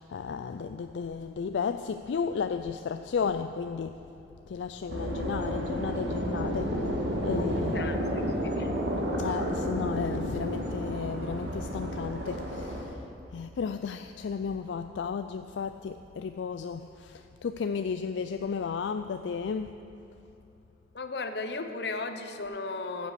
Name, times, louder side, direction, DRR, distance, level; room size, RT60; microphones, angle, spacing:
voice 1, 0.0-4.0 4.5-6.9 7.2-7.9 9.2-13.0 13.3-19.7, left 6 dB, 80° left, 9 dB, 0.4 m, -33 dB
sound 1, 4.9-12.8, equal, 75° right, 2.0 m, -31 dB
voice 2, 7.3-8.8 20.9-23.1, left 3 dB, 65° left, 8 dB, 0.8 m, -36 dB
14.5 x 7.8 x 6.7 m, 2.9 s
head